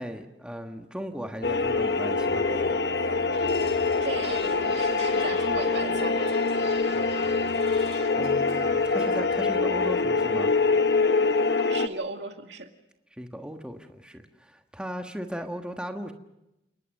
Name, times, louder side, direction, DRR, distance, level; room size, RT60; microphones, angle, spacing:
voice 1, 0.0-2.7 6.9-7.3 8.2-10.5 13.2-16.1, equal, 5° right, 4 dB, 1.4 m, -37 dB
sound 1, 1.4-11.9, left 4 dB, 65° left, 1.0 m, -24 dB
sound 2, 3.3-9.6, left 5 dB, 35° left, 2.6 m, -46 dB
voice 2, 4.0-6.4 11.6-12.7, right 3 dB, 80° right, 4 dB, 2.1 m, -36 dB
30.0 x 19.5 x 6.5 m, 0.92 s
head